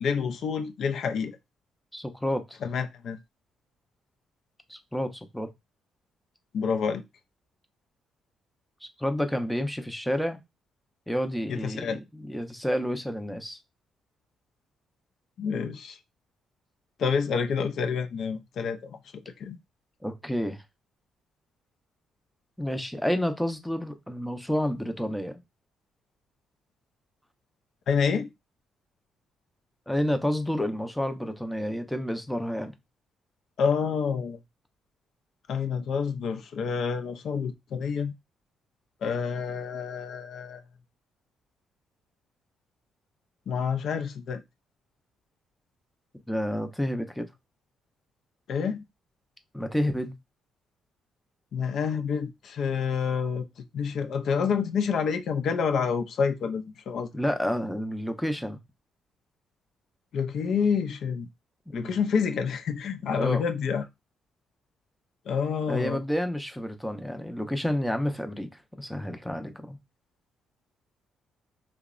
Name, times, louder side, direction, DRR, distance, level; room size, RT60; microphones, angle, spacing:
voice 1, 0.0-1.4 2.6-3.2 6.5-7.0 11.5-12.0 15.4-16.0 17.0-19.6 27.9-28.3 33.6-34.4 35.5-38.1 39.0-40.6 43.5-44.4 48.5-48.8 51.5-57.1 60.1-61.3 61.7-63.8 65.3-66.0, left 6 dB, 65° left, 0.3 m, -28 dB
voice 2, 1.9-2.6 4.7-5.5 8.8-10.4 11.1-13.6 20.0-20.6 22.6-25.4 29.9-32.7 46.3-47.3 49.5-50.1 57.1-58.6 61.7-61.9 63.2-63.4 65.7-69.8, equal, 5° left, 0.4 m, -30 dB
2.8 x 2.0 x 2.3 m
cardioid pair, 90°, 0 cm